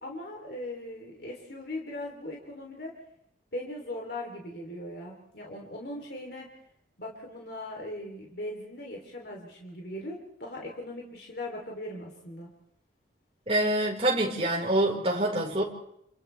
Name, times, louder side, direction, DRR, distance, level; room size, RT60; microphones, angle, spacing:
voice 1, 0.0-2.9 3.5-6.5 7.0-12.5, left 1 dB, 60° left, -1 dB, 3.5 m, -39 dB
voice 2, 13.5-15.6, right 1 dB, 30° right, -2 dB, 4.8 m, -26 dB
30.0 x 29.0 x 3.5 m, 0.75 s
head